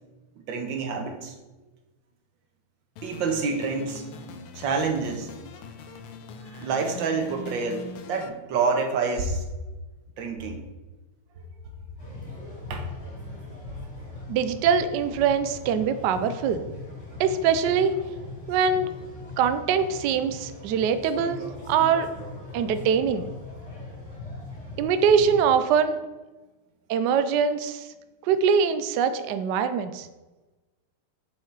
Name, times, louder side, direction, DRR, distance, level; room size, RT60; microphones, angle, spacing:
voice 1, 0.4-1.3 3.0-4.1 4.6-5.3 6.5-9.4 10.2-10.6 12.7-12.9, right 4 dB, 65° right, 4 dB, 1.7 m, -27 dB
sound 1, 3.0-8.3, left 4 dB, 85° left, 1.6 m, -42 dB
sound 2, 12.0-25.5, left 2 dB, 30° left, 3.2 m, -40 dB
voice 2, 14.3-16.6 17.2-17.9 18.5-18.9 19.4-22.1 22.5-23.3 24.8-26.0 26.9-27.9 28.3-30.1, right 6 dB, 85° right, 10 dB, 0.9 m, -23 dB
7.6 x 5.5 x 4.7 m, 1.1 s
omnidirectional pair, 2.4 m